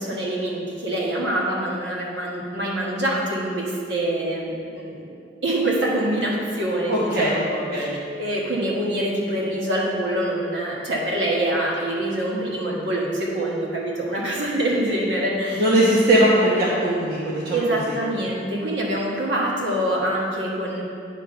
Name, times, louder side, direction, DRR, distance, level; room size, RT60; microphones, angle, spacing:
voice 1, 0.0-5.1 5.4-7.9 8.1-15.7 17.5-20.8, right 1 dB, 70° right, -3 dB, 1.4 m, -25 dB
voice 2, 6.9-7.4 7.7-8.0 15.5-17.9, right 1 dB, 55° right, -7 dB, 1.1 m, -20 dB
9.3 x 3.7 x 5.6 m, 2.4 s
head